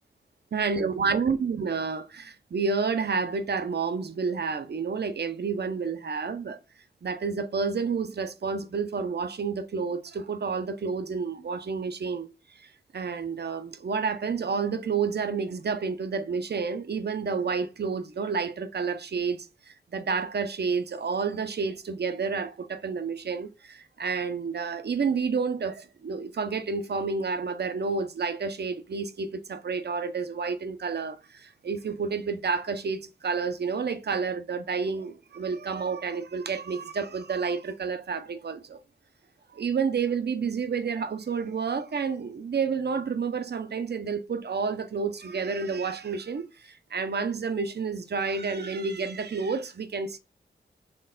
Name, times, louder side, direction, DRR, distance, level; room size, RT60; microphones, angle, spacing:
voice 1, 0.5-6.6 7.0-12.3 12.9-38.8 39.5-50.2, right 5 dB, 60° right, 0.7 m, -30 dB
4.4 x 3.2 x 3.8 m
wide cardioid pair, 70°, 19 cm